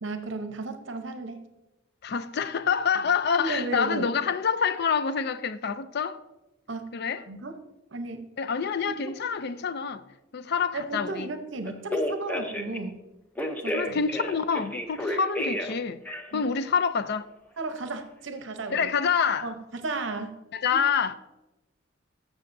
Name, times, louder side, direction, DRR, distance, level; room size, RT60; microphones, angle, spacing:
voice 1, 0.0-1.5 3.4-4.1 6.7-6.9 7.3-7.6 7.9-8.3 9.0-9.1 10.7-13.0 13.6-14.0 16.3-16.4 17.6-18.8 19.4-20.3 20.7-20.8, right 3 dB, 65° right, 0.8 m, -34 dB
voice 2, 2.0-6.2 6.9-7.2 8.4-10.0 10.3-11.3 13.7-16.0 16.3-17.3 18.7-19.5 20.5-21.1, left 6 dB, 55° left, 0.4 m, -27 dB
Telephone, 11.7-12.8 13.4-15.7 16.1-16.5, left 1 dB, 10° left, 0.7 m, -31 dB
14.0 x 6.3 x 2.6 m
head